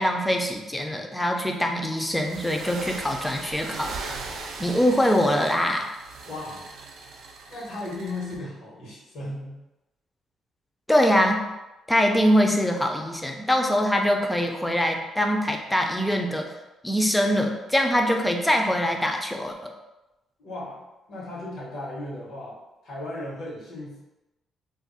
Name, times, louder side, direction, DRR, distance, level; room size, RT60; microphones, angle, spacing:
voice 1, 0.0-4.0 4.6-5.9 10.9-11.4 11.9-16.5 16.8-19.5, equal, 10° left, 3 dB, 0.4 m, -23 dB
sound 1, 2.1-8.4, right 3 dB, 80° right, 0.4 m, -39 dB
voice 2, 6.3-6.9 7.5-9.6 20.4-20.8 21.1-22.6 22.8-24.0, left 2 dB, 75° left, -5 dB, 1.1 m, -36 dB
2.4 x 2.0 x 3.9 m, 1.0 s
cardioid pair, 90°, 0 cm